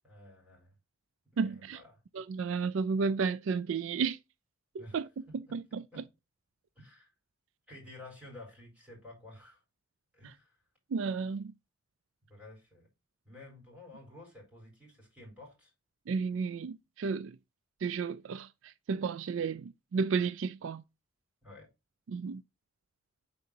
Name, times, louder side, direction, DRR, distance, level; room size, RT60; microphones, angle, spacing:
voice 1, 0.0-0.7 1.3-2.0 4.8-5.0 5.3-5.6 5.9-6.1 6.7-7.1 7.7-9.6 10.1-10.6 12.3-12.9 13.2-15.7 21.4-21.7, left 2 dB, 5° right, 4.1 m, -52 dB
voice 2, 1.4-1.8 2.1-4.2 4.9-5.1 5.3-5.8 10.9-11.5 16.1-17.4 17.8-20.8 22.1-22.4, right 5 dB, 70° right, 0.4 m, -32 dB
10.0 x 4.1 x 2.7 m
head